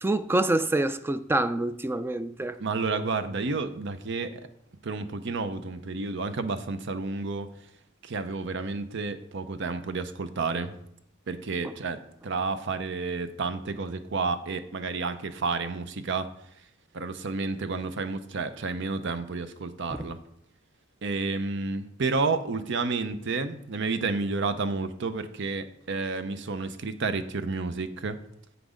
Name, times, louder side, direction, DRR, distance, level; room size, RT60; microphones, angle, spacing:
voice 1, 0.0-2.6 19.9-20.1, right 2 dB, 10° right, 0.3 m, -26 dB
voice 2, 2.6-4.4 4.8-7.5 8.0-10.7 11.3-16.3 16.9-20.2 21.0-28.2, right 4 dB, 65° right, 0.7 m, -30 dB
8.1 x 6.0 x 5.0 m
head